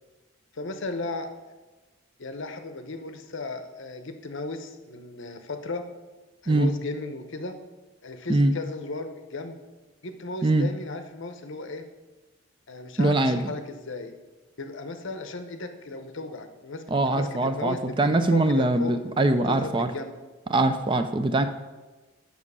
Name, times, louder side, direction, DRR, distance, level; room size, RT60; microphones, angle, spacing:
voice 1, 0.5-1.3 2.2-5.9 6.4-7.6 8.0-9.6 10.0-11.8 12.7-14.1 14.6-18.9 19.5-20.2, left 3 dB, 60° left, 8 dB, 0.8 m, -35 dB
voice 2, 13.0-13.5 16.9-19.9 20.5-21.5, right 2 dB, 25° right, 9 dB, 0.4 m, -22 dB
7.3 x 6.3 x 5.5 m, 1.2 s
head